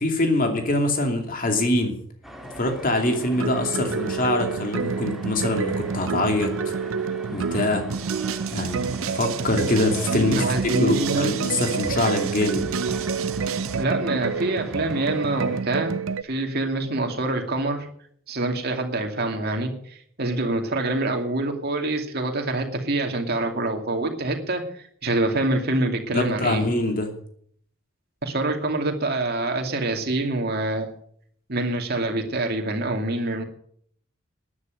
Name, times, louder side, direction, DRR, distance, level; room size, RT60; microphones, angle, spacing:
voice 1, 0.0-2.0 2.6-6.5 7.3-7.8 8.5-12.7 26.1-27.1, left 1 dB, 40° left, 4 dB, 2.7 m, -24 dB
sound 1, 2.2-15.6, equal, ahead, 1.8 m, -41 dB
sound 2, 3.4-16.2, right 5 dB, 70° right, 0.5 m, -28 dB
sound 3, 7.9-13.8, right 7 dB, 90° right, 0.9 m, -34 dB
voice 2, 10.1-11.3 13.7-17.9 18.3-19.7 20.2-26.7 28.2-30.9 31.5-33.4, right 2 dB, 50° right, 3 dB, 2.4 m, -26 dB
12.5 x 9.9 x 7.8 m, 0.63 s
head